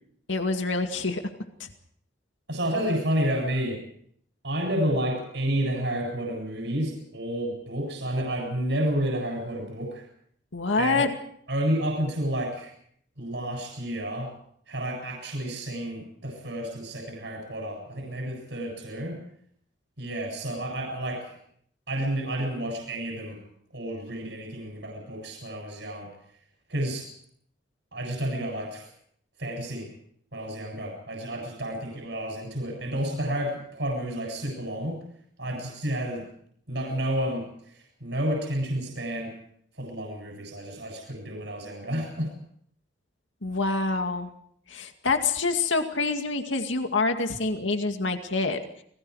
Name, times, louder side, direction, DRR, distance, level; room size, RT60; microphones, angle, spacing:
voice 1, 0.3-1.2 1.6-1.7 10.5-11.1 43.4-44.3 44.7-48.6, left 3 dB, 90° left, 5 dB, 2.2 m, -26 dB
voice 2, 2.5-3.8 4.4-10.0 10.8-11.0 11.5-12.7 13.2-14.3 14.7-19.2 20.0-21.3 21.9-23.4 23.7-26.1 26.7-27.0 27.9-28.9 29.4-29.9 30.3-35.0 35.4-36.2 36.7-39.3 39.8-42.3, right 1 dB, 70° right, -1 dB, 7.5 m, -30 dB
29.5 x 20.5 x 4.9 m, 0.67 s
head